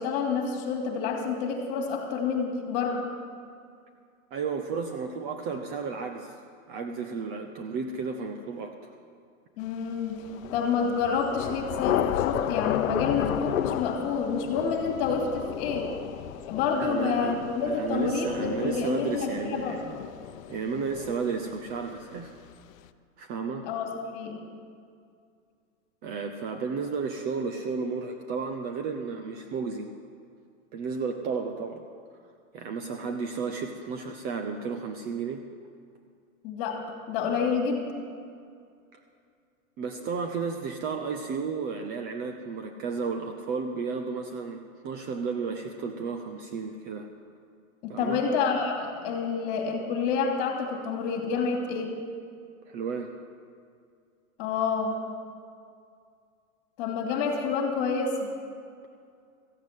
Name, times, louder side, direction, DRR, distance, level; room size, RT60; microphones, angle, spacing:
voice 1, 0.0-3.1 9.6-10.2 10.5-15.9 16.5-19.8 23.7-24.4 36.4-36.8 37.1-37.9 47.8-51.9 54.4-55.0 56.8-58.3, left 5 dB, 40° left, 3 dB, 2.7 m, -28 dB
voice 2, 4.3-6.3 6.7-8.9 16.8-20.0 20.5-22.3 23.2-23.7 26.0-29.9 30.7-31.9 32.5-35.4 39.8-47.1 47.9-48.2 52.7-53.1, right 5 dB, 25° right, 5 dB, 0.6 m, -33 dB
Thunder / Rain, 10.2-21.8, left 12 dB, 70° left, 0.8 m, -33 dB
14.5 x 8.2 x 9.0 m, 2.3 s
hypercardioid pair, 145°, 42 cm